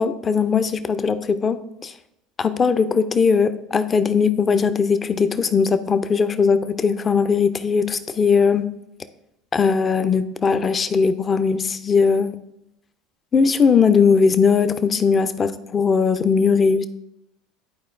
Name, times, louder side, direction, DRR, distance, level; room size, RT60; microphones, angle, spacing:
voice 1, 0.0-1.9 2.4-8.7 9.5-12.3 13.3-16.9, left 5 dB, 30° left, 11 dB, 0.5 m, -19 dB
10.5 x 4.4 x 2.5 m, 0.84 s
hypercardioid pair, 85°, 0 cm